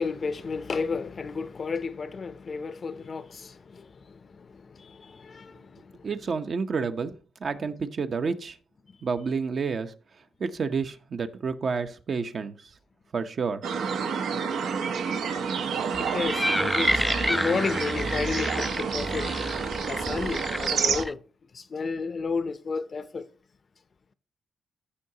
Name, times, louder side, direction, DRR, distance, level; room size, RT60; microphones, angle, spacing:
voice 1, 0.0-6.1 8.9-9.0 16.0-19.3 19.9-21.2 21.5-23.3, left 4 dB, 45° left, 0.6 m, -32 dB
voice 2, 6.0-7.1 7.4-8.6 9.0-9.9 10.4-12.6 13.1-13.6 14.0-14.1, right 5 dB, 55° right, 0.9 m, -29 dB
sound 1, 13.6-21.0, right 6 dB, 85° right, 0.9 m, -29 dB
sound 2, 15.9-21.1, left 1 dB, 10° left, 0.3 m, -29 dB
14.0 x 5.6 x 2.9 m
cardioid pair, 80°, 0 cm